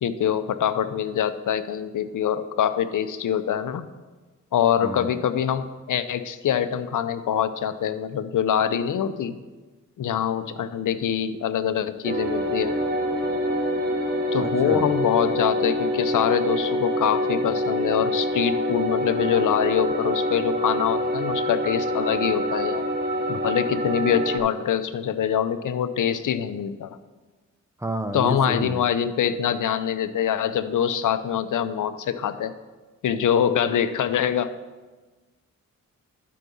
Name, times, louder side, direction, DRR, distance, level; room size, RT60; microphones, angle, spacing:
voice 1, 0.0-3.9 4.5-9.4 10.0-12.7 14.3-22.8 23.3-27.0 28.1-32.5 33.0-34.5, left 9 dB, 70° left, 11 dB, 0.6 m, -24 dB
voice 2, 4.8-5.2 14.4-14.9 27.8-28.8, right 1 dB, 10° right, 8 dB, 0.8 m, -30 dB
sound 1, 12.0-24.4, equal, 30° right, 1.6 m, -26 dB
12.0 x 4.7 x 5.4 m, 1.3 s
cardioid pair, 60°, 32 cm